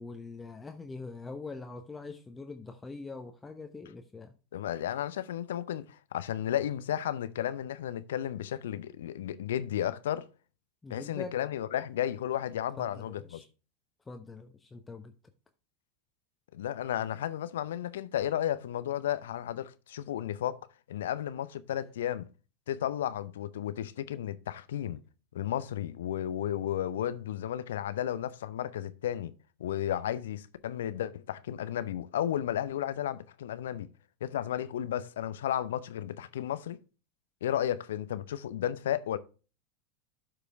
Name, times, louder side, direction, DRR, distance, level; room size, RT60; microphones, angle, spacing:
voice 1, 0.0-4.3 10.8-11.3 12.8-13.5 14.1-15.1, left 3 dB, 15° left, 0.9 m, -43 dB
voice 2, 4.5-10.3 10.9-13.4 16.5-22.3 22.7-25.0 25.3-29.3 29.6-33.9 34.2-36.8 37.4-39.2, left 11 dB, 70° left, 0.6 m, -33 dB
12.5 x 5.1 x 3.4 m
figure-of-eight pair, 85°, 0 cm